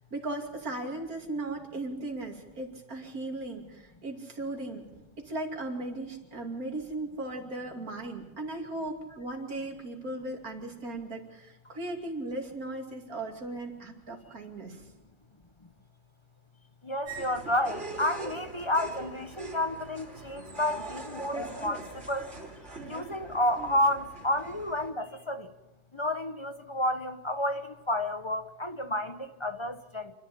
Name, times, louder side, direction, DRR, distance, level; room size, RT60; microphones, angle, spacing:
voice 1, 0.1-4.9 5.2-14.9, right 2 dB, 60° right, 3.2 m, -37 dB
voice 2, 16.8-22.3 22.9-25.5 25.9-30.1, left 1 dB, 25° left, 0.8 m, -30 dB
sound 1, 17.0-24.9, right 2 dB, 45° right, 3.8 m, -42 dB
28.5 x 11.5 x 8.7 m
omnidirectional pair, 1.7 m